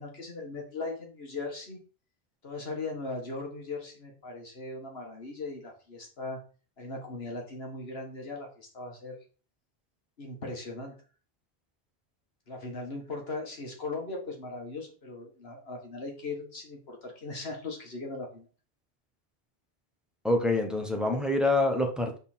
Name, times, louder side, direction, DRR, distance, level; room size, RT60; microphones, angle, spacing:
voice 1, 0.0-1.8 2.4-6.4 6.8-9.2 10.2-10.9 12.5-18.5, left 3 dB, 70° left, 1 dB, 1.8 m, -38 dB
voice 2, 20.2-22.2, left 2 dB, ahead, 3 dB, 0.9 m, -26 dB
5.5 x 4.1 x 4.3 m, 0.37 s
omnidirectional pair, 1.1 m